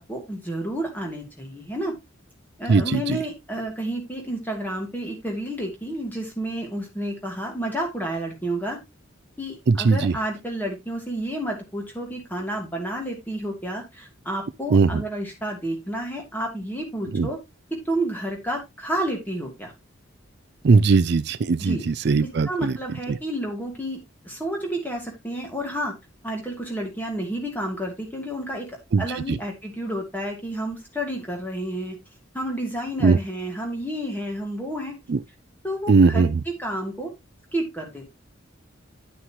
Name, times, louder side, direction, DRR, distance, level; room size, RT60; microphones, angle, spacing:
voice 1, 0.0-1.9 2.6-8.8 9.4-17.4 17.7-19.7 21.6-21.8 22.2-25.9 26.2-28.7 29.0-32.0 32.3-34.9 35.6-36.3 36.6-37.1 37.5-38.1, right 1 dB, 10° left, 2.7 m, -30 dB
voice 2, 2.7-3.2 9.7-10.2 14.7-15.0 17.1-17.3 20.6-22.8 23.1-23.2 28.9-29.4 33.0-33.2 35.1-35.2 35.9-36.4, right 4 dB, 55° right, 0.4 m, -19 dB
11.0 x 6.3 x 3.0 m
head